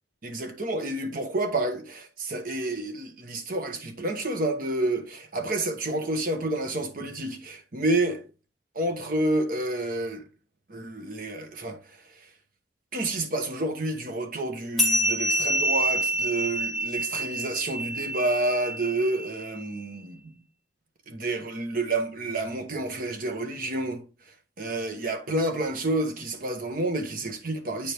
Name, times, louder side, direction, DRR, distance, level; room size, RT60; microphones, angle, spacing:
voice 1, 0.2-8.2 8.7-10.2 10.7-11.8 12.9-20.3 21.1-24.0 24.6-27.9, right 2 dB, 50° right, 1.1 m, -29 dB
sound 1, 14.8-19.6, right 1 dB, ahead, 2.1 m, -27 dB
8.6 x 5.0 x 3.1 m
head